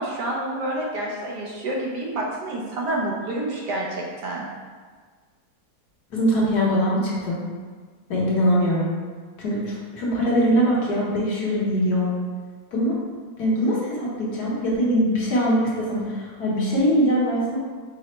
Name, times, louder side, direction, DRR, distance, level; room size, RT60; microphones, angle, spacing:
voice 1, 0.0-4.5, right 1 dB, 70° right, -2 dB, 1.1 m, -28 dB
voice 2, 6.1-7.4 8.1-8.9 9.4-12.2 12.7-13.0 13.4-17.6, equal, 60° left, -5 dB, 1.3 m, -22 dB
4.8 x 2.1 x 4.2 m, 1.5 s
omnidirectional pair, 2.0 m